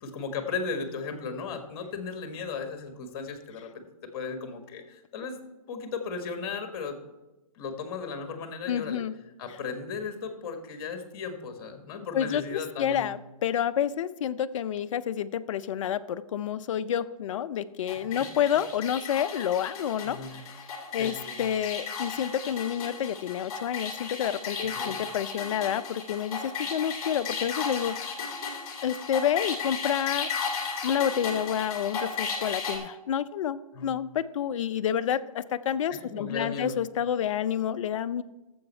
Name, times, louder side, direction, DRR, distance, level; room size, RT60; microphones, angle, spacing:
voice 1, 0.0-3.9 4.1-5.4 5.7-7.0 7.6-9.0 9.4-13.0 20.1-20.3 20.9-21.4 24.8-25.0 33.7-33.9 35.9-36.8, left 5 dB, 40° left, 6 dB, 1.6 m, -36 dB
voice 2, 8.7-9.2 9.5-9.6 12.1-20.6 20.9-28.2 28.8-30.3 30.8-38.2, left 9 dB, 55° left, 11 dB, 0.5 m, -29 dB
sound 1, 17.9-32.8, left 5 dB, 25° left, 2.5 m, -35 dB
14.0 x 7.1 x 4.3 m, 1.0 s
hypercardioid pair, 155°, 19 cm